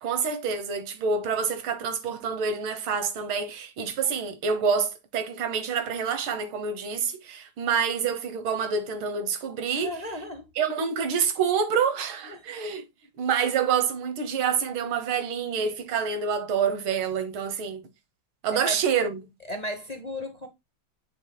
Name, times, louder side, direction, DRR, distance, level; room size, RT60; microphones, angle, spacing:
voice 1, 0.0-10.0 10.6-12.8 13.2-17.8 18.4-19.2, right 6 dB, 90° right, 2.0 m, -27 dB
voice 2, 9.8-10.5 12.3-12.4 18.5-18.8 19.5-20.5, left 1 dB, 30° left, 0.8 m, -34 dB
7.9 x 6.3 x 2.3 m
omnidirectional pair, 2.2 m